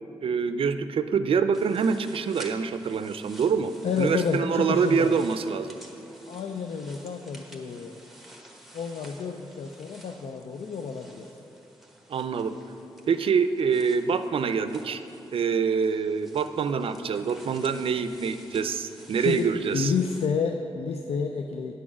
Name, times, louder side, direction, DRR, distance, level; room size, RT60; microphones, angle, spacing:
voice 1, 0.2-5.8 12.1-12.6 13.1-15.0 15.3-19.9, right 6 dB, 65° right, 11 dB, 0.4 m, -25 dB
sound 1, 1.5-20.3, right 1 dB, ahead, 1.1 m, -50 dB
voice 2, 3.8-5.1 6.3-8.0 8.7-11.3 19.1-21.7, left 5 dB, 80° left, 5 dB, 0.4 m, -30 dB
9.4 x 6.2 x 6.0 m, 3.0 s
wide cardioid pair, 95°, 10 cm